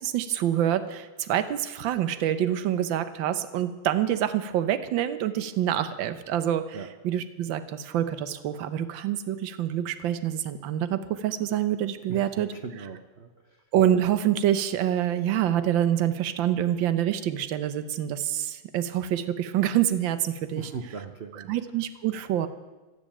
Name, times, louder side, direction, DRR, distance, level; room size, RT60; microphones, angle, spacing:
voice 1, 0.0-12.9 13.7-20.7 21.3-22.5, right 11 dB, 65° right, 11 dB, 1.5 m, -26 dB
voice 2, 12.1-13.3 20.5-21.5, right 5 dB, 85° right, 6 dB, 0.5 m, -39 dB
12.5 x 12.0 x 8.7 m, 1.2 s
omnidirectional pair, 2.3 m